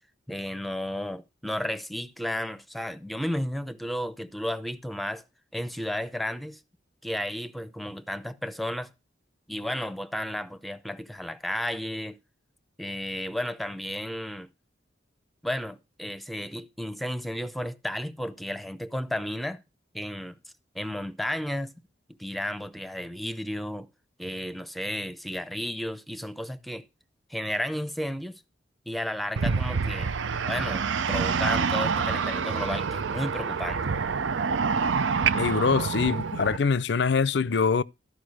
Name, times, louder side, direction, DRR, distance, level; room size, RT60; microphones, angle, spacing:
voice 1, 0.3-5.2 5.5-6.6 7.0-8.9 9.5-12.2 12.8-14.5 15.4-19.6 19.9-20.4 20.7-21.7 22.1-23.9 24.2-26.9 27.3-28.4 28.9-30.1 30.4-33.9, left 1 dB, ahead, 0.6 m, -33 dB
sound 1, 29.4-36.6, right 5 dB, 85° right, 0.6 m, -27 dB
voice 2, 35.3-37.8, left 5 dB, 65° left, 0.5 m, -24 dB
13.5 x 5.1 x 6.4 m
head